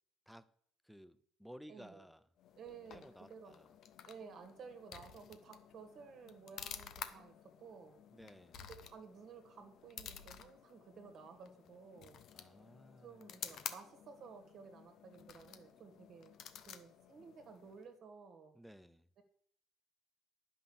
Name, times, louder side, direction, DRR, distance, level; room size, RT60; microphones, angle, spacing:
voice 1, 0.8-2.3 2.9-3.7 8.1-8.7 12.3-13.3 18.5-19.1, equal, ahead, 14 dB, 0.6 m, -56 dB
voice 2, 1.7-2.0 2.6-3.0 3.3-3.6 4.1-7.9 8.8-12.2 13.0-16.4 16.7-18.5, right 5 dB, 45° right, 6 dB, 1.7 m, -54 dB
sound 1, 2.4-18.0, left 8 dB, 55° left, 1.0 m, -52 dB
10.5 x 5.8 x 7.1 m, 0.62 s
cardioid pair, 130°, 0 cm